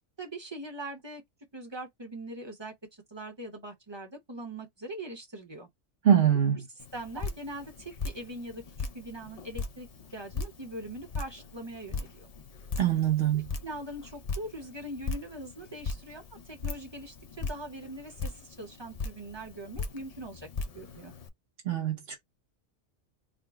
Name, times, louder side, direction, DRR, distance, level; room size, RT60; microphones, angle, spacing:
voice 1, 0.2-1.2 1.5-5.7 6.9-12.3 13.6-20.5 20.7-21.1, right 1 dB, 25° right, 0.8 m, -42 dB
voice 2, 6.0-6.6 12.8-13.5 21.6-22.2, right 9 dB, 55° right, 0.9 m, -24 dB
Drip, 6.8-21.3, left 4 dB, 60° left, 0.4 m, -39 dB
3.7 x 2.1 x 3.5 m
omnidirectional pair, 1.4 m